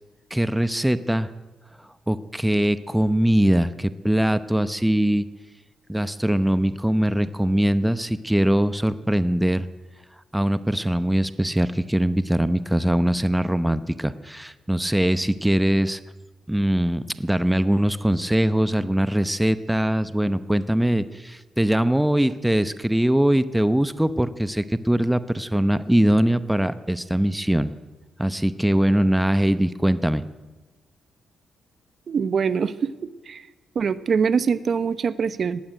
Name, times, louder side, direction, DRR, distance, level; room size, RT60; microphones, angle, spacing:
voice 1, 0.3-1.3 2.1-5.3 5.9-9.7 10.3-16.0 16.5-27.7 28.2-30.2, right 1 dB, 5° right, 13 dB, 0.8 m, -22 dB
voice 2, 32.1-32.9 33.3-33.5 33.7-35.6, right 6 dB, 50° right, 14 dB, 0.9 m, -23 dB
19.0 x 15.5 x 9.3 m, 1.2 s
cardioid pair, 95°, 0 cm